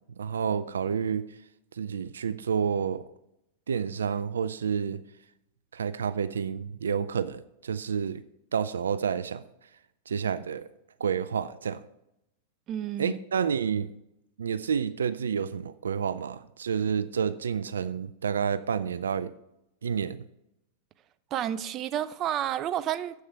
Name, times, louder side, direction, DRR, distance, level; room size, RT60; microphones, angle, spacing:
voice 1, 0.2-1.4 1.7-3.0 3.7-5.0 5.7-8.2 8.5-9.4 10.1-10.7 11.0-11.8 13.0-13.9 14.4-19.3 19.8-20.3, right 7 dB, 80° right, 0.4 m, -29 dB
voice 2, 12.7-13.2 21.3-23.2, right 11 dB, 35° right, 0.6 m, -30 dB
10.0 x 8.1 x 4.6 m
hypercardioid pair, 100°, 0 cm